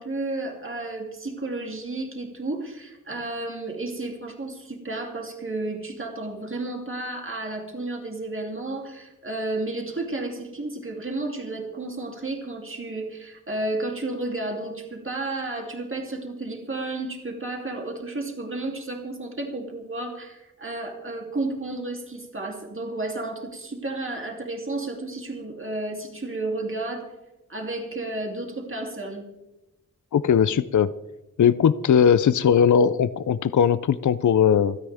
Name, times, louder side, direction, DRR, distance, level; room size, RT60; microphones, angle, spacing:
voice 1, 0.0-27.1 27.5-29.3, right 2 dB, 40° right, 1 dB, 3.0 m, -32 dB
voice 2, 30.1-30.9 31.4-34.8, left 8 dB, 65° left, 15 dB, 0.5 m, -19 dB
28.5 x 9.8 x 3.5 m, 1.0 s
wide cardioid pair, 65°, 32 cm